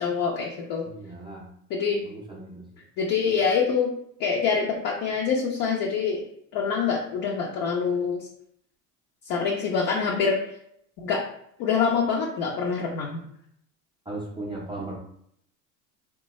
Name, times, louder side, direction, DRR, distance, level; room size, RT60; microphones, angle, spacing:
voice 1, 0.0-0.8 1.7-2.0 3.0-3.9 4.2-6.2 6.5-8.3 9.3-10.4 11.0-11.2 11.6-13.2, left 5 dB, 55° left, -2 dB, 0.7 m, -25 dB
voice 2, 0.8-1.5 2.0-2.7 14.1-15.0, right 2 dB, 10° right, -4 dB, 0.5 m, -37 dB
3.3 x 2.2 x 3.0 m, 0.68 s
hypercardioid pair, 95°, 39 cm